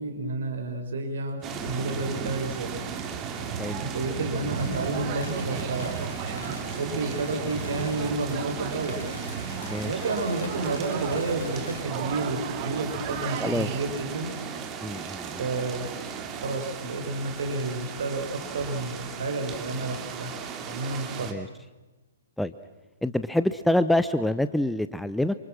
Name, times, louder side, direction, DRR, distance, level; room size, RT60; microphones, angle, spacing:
voice 1, 0.0-2.7 3.2-9.0 9.8-14.3 15.3-15.9 16.3-20.4 20.7-21.3, right 3 dB, 60° right, 4 dB, 6.0 m, -31 dB
sound 1, 1.4-21.3, right 6 dB, 20° right, 2.8 m, -35 dB
sound 2, 3.1-13.8, right 8 dB, 35° right, 2.5 m, -38 dB
voice 2, 3.5-3.8 9.6-9.9 13.4-13.7 14.8-15.4 21.2-21.5 22.4-22.5 23.0-25.3, left 1 dB, ahead, 12 dB, 0.8 m, -26 dB
sound 3, 4.6-11.9, left 3 dB, 65° left, 5.7 m, -45 dB
28.0 x 27.0 x 6.3 m, 1.1 s
figure-of-eight pair, 120°, 0 cm